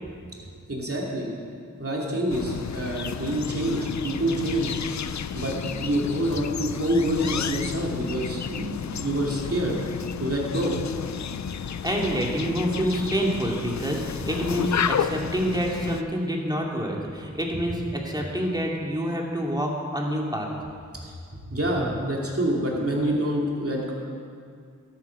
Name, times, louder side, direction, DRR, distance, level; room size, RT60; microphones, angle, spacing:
voice 1, 0.4-1.3 1.8-4.8 5.3-9.8 10.2-10.8 17.5-17.6 21.0-21.1 21.5-23.9, right 1 dB, 45° right, -3 dB, 2.8 m, -27 dB
sound 1, 2.3-16.0, left 8 dB, 65° left, 0.5 m, -32 dB
voice 2, 11.6-20.5, equal, 15° right, -1 dB, 2.3 m, -27 dB
12.5 x 8.7 x 6.0 m, 2.3 s
wide cardioid pair, 45°, 31 cm